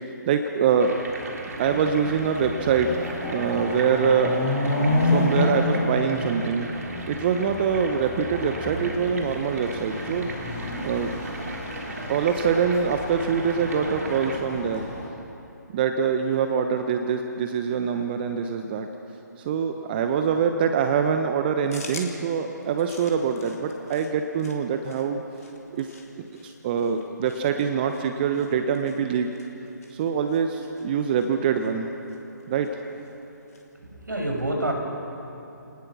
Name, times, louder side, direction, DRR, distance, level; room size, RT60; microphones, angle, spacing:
voice 1, 0.3-1.0 1.6-4.6 5.0-6.7 7.1-10.3 10.8-11.1 12.1-14.9 15.7-18.9 19.4-25.2 25.7-25.9 26.2-29.3 29.9-31.9 32.5-32.7, right 6 dB, 30° right, 6 dB, 1.0 m, -24 dB
sound 1, 0.8-14.4, right 2 dB, 55° right, 3.3 m, -38 dB
Chatter / Car passing by / Motorcycle, 1.0-1.1 1.5-15.1, left 2 dB, 25° left, 7.6 m, -30 dB
sound 2, 21.7-33.7, left 4 dB, 55° left, 3.2 m, -48 dB
voice 2, 33.8-34.7, right 1 dB, 75° right, 2 dB, 5.9 m, -27 dB
29.5 x 19.0 x 6.1 m, 2.9 s
figure-of-eight pair, 140°, 10 cm